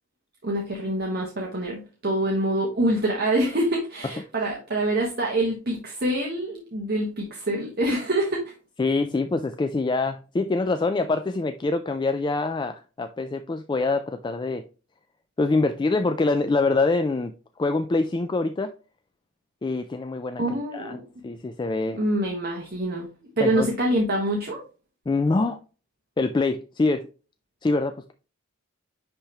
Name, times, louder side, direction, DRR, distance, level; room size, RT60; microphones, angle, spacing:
voice 1, 0.4-8.5 20.4-21.0 21.9-23.1 23.4-24.6, right 1 dB, 50° right, 1.3 m, -25 dB
voice 2, 8.8-14.6 15.4-17.3 17.6-18.7 19.6-20.4 20.7-21.0 21.2-22.0 23.4-23.7 25.1-25.6 26.2-27.1 27.6-28.1, left 3 dB, 20° left, 0.3 m, -25 dB
10.0 x 3.4 x 2.9 m
head